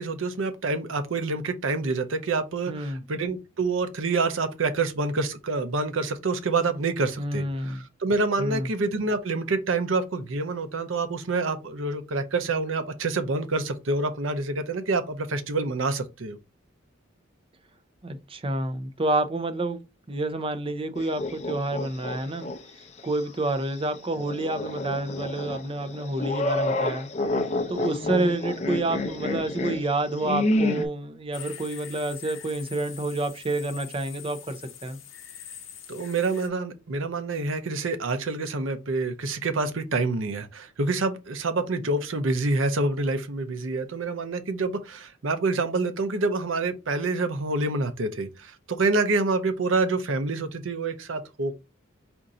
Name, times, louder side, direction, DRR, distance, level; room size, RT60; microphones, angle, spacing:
voice 1, 0.0-16.4 35.9-51.6, right 3 dB, 75° right, 0.6 m, -27 dB
voice 2, 2.7-3.0 7.2-7.8 8.4-8.7 18.0-19.8 20.1-22.5 23.0-27.1 27.7-35.0, right 2 dB, 30° right, 0.6 m, -28 dB
sound 1, 21.0-22.6 23.0-23.1 24.1-30.9, left 2 dB, 35° left, 0.6 m, -29 dB
sound 2, 31.3-36.5, left 9 dB, 75° left, 0.8 m, -44 dB
4.3 x 2.6 x 3.7 m
head